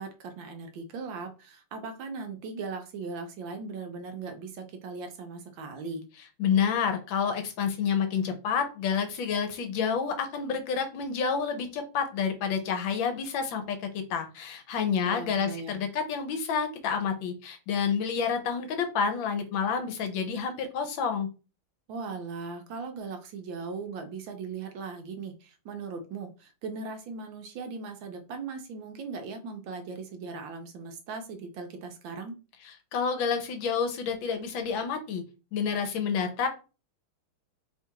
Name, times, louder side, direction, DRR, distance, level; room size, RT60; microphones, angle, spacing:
voice 1, 0.0-6.0 15.1-15.8 21.9-32.4, right 4 dB, 70° right, 6 dB, 1.4 m, -38 dB
voice 2, 6.4-21.3 32.6-35.2 35.5-36.5, left 6 dB, 75° left, 7 dB, 1.4 m, -29 dB
3.6 x 2.4 x 4.5 m, 0.32 s
omnidirectional pair, 2.3 m